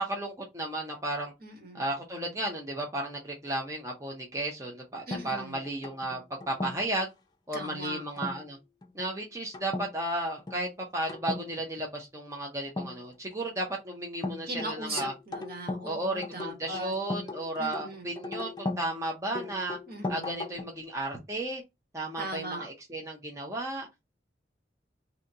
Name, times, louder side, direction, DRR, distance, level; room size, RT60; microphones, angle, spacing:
voice 1, 0.0-1.3 1.7-6.2 6.5-7.1 7.5-8.6 8.9-15.1 15.8-19.8 20.1-21.6 21.9-23.9, right 1 dB, 15° right, 0.7 m, -34 dB
voice 2, 1.4-1.8 5.1-5.6 7.5-8.0 14.5-16.9 17.6-18.1 19.9-20.3 22.2-22.6, right 1 dB, 55° right, 1.8 m, -38 dB
sound 1, 5.1-7.0 8.2-8.5 8.8-9.1 9.5-9.9 10.2-10.6 11.1-11.5 12.7-13.4 14.2-15.9 16.2-18.9 19.3-20.8, left 2 dB, 25° left, 0.6 m, -37 dB
3.9 x 2.8 x 2.7 m
head